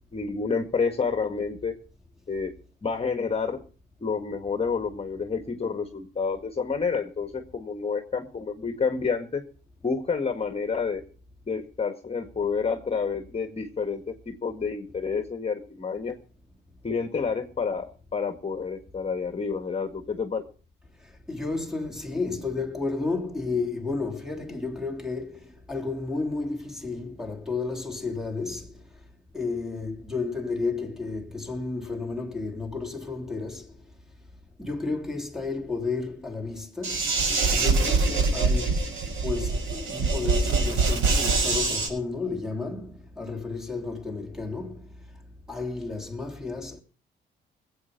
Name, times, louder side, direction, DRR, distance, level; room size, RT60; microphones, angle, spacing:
voice 1, 0.1-1.7 2.3-2.5 2.8-3.6 4.0-9.4 9.8-11.0 11.5-16.2 16.8-20.4, left 5 dB, 30° left, 1.8 m, -29 dB
voice 2, 21.3-28.7 29.3-33.7 34.6-37.0 37.5-44.8 45.5-46.8, left 3 dB, ahead, 3.3 m, -32 dB
sound 1, 36.8-41.9, right 4 dB, 80° right, 6.3 m, -24 dB
21.0 x 8.5 x 5.2 m
cardioid pair, 90°, 20 cm